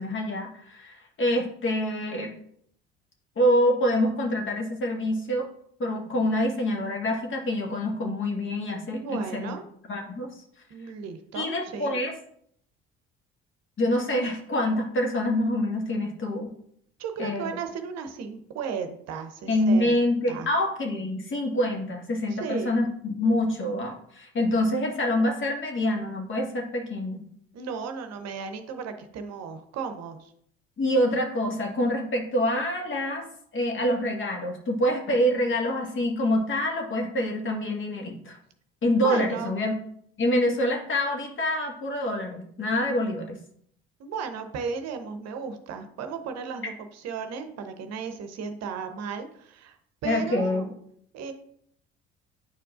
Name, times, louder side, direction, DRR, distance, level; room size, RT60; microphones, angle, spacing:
voice 1, 0.0-2.3 3.4-5.5 5.8-9.6 9.9-10.3 11.3-12.1 13.8-16.5 17.2-17.6 19.5-27.2 30.8-33.3 33.5-38.4 38.8-39.7 40.2-43.4 50.0-50.7, left 1 dB, 40° left, 1 dB, 1.6 m, -26 dB
voice 2, 8.9-9.6 10.7-12.0 17.0-20.0 20.3-20.5 22.3-22.8 27.5-30.3 39.0-39.6 44.0-49.8 50.0-50.7 51.1-51.3, right 6 dB, 55° right, 7 dB, 0.8 m, -35 dB
9.3 x 4.6 x 2.4 m, 0.68 s
hypercardioid pair, 55°, 32 cm